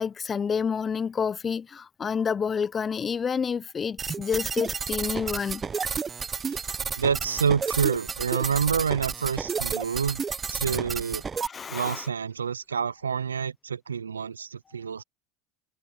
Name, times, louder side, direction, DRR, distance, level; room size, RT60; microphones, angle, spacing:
voice 1, 0.0-5.6 11.4-12.1, left 6 dB, 30° left, 1.1 m, -29 dB
sound 1, 4.0-11.5, right 6 dB, 25° right, 1.0 m, -31 dB
voice 2, 7.0-10.2 10.5-11.2 11.7-15.0, right 6 dB, 85° right, 0.8 m, -27 dB
hypercardioid pair, 75°, 0 cm